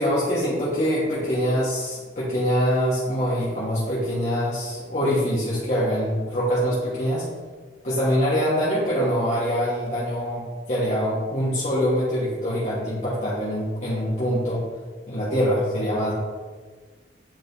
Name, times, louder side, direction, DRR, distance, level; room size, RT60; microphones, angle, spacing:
voice 1, 0.0-7.3 7.8-14.6 15.1-16.1, equal, 40° left, -8 dB, 1.3 m, -24 dB
9.0 x 5.0 x 2.6 m, 1.5 s
head